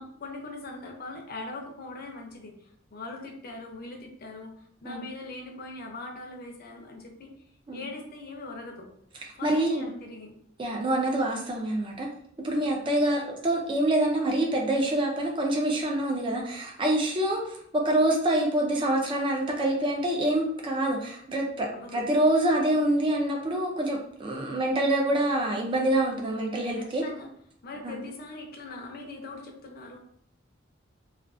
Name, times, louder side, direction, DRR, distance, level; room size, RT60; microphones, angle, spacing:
voice 1, 0.0-7.3 7.7-8.9 9.3-10.3 21.7-22.0 26.8-27.3 27.6-30.0, left 2 dB, 50° left, 2 dB, 0.5 m, -41 dB
voice 2, 9.4-9.9 10.6-12.1 12.4-27.0 27.8-28.0, right 1 dB, 25° right, 0 dB, 0.4 m, -26 dB
2.3 x 2.3 x 2.4 m, 0.67 s
head